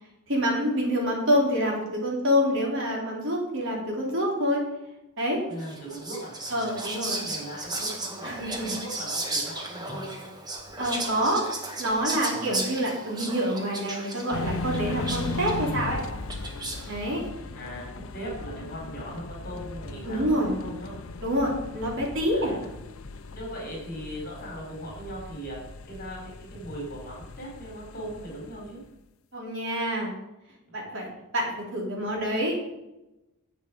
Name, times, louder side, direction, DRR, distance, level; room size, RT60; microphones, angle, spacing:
voice 1, 0.3-4.6 5.2-5.4 6.5-7.2 8.2-8.8 10.8-16.0 16.9-17.2 20.0-20.5 21.2-22.5 29.3-30.1 30.7-32.6, equal, 55° right, -2 dB, 3.5 m, -27 dB
voice 2, 5.5-6.8 7.1-8.3 8.7-10.3 12.3-12.5 17.5-17.9 18.1-20.9 22.3-22.7 23.3-25.6 25.8-28.8, equal, 40° left, -2 dB, 4.4 m, -39 dB
Whispering, 5.6-17.0, right 2 dB, 20° right, 1.5 m, -35 dB
sound 1, 14.3-28.8, left 3 dB, 65° left, 0.7 m, -38 dB
10.5 x 8.1 x 5.2 m, 0.94 s
head